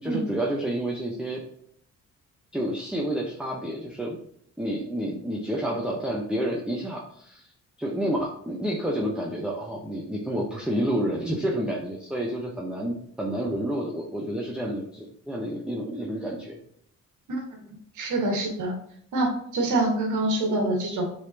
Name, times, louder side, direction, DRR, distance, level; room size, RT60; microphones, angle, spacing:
voice 1, 0.0-1.4 2.5-4.2 4.6-7.5 7.8-16.6, right 1 dB, 5° right, -2 dB, 1.1 m, -29 dB
voice 2, 17.3-17.6 18.0-18.7 19.1-21.1, right 2 dB, 75° right, 1 dB, 1.9 m, -26 dB
7.9 x 4.2 x 2.9 m, 0.66 s
cardioid pair, 90°, 30 cm